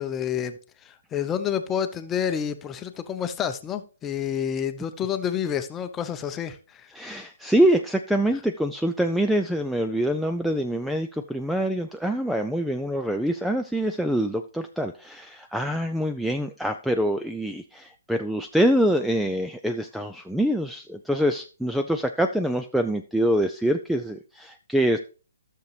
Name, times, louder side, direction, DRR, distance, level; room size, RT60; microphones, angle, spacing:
voice 1, 0.0-7.0, left 8 dB, 15° left, 10 dB, 0.7 m, -29 dB
voice 2, 6.9-25.0, right 1 dB, ahead, 6 dB, 0.4 m, -25 dB
13.0 x 6.7 x 3.3 m, 0.37 s
figure-of-eight pair, 130°, 0 cm